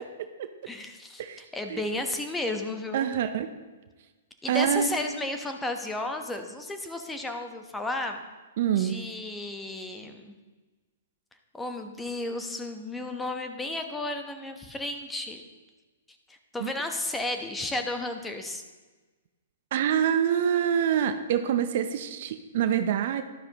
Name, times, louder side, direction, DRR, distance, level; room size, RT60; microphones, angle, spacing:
voice 1, 0.7-1.2 1.5-3.1 4.4-8.2 8.8-10.4 11.5-15.4 16.3-18.6, left 2 dB, 10° left, 5 dB, 1.0 m, -33 dB
voice 2, 2.9-3.5 4.5-4.9 8.6-9.0 16.6-16.7 19.7-23.2, right 9 dB, 55° right, 9 dB, 0.6 m, -25 dB
12.0 x 11.5 x 3.0 m, 1.3 s
figure-of-eight pair, 115°, 0 cm